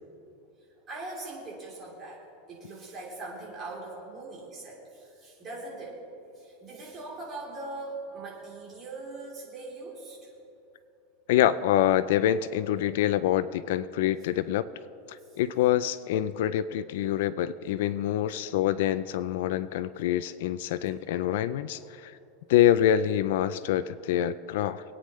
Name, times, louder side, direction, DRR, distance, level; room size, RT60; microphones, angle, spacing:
voice 1, 0.9-2.2 2.5-6.0 6.4-10.2, right 2 dB, 20° right, -5 dB, 3.4 m, -41 dB
voice 2, 11.3-14.6 15.1-22.1 22.5-24.8, left 11 dB, 65° left, 14 dB, 0.4 m, -26 dB
25.0 x 9.2 x 3.2 m, 2.8 s
supercardioid pair, 165°, 0 cm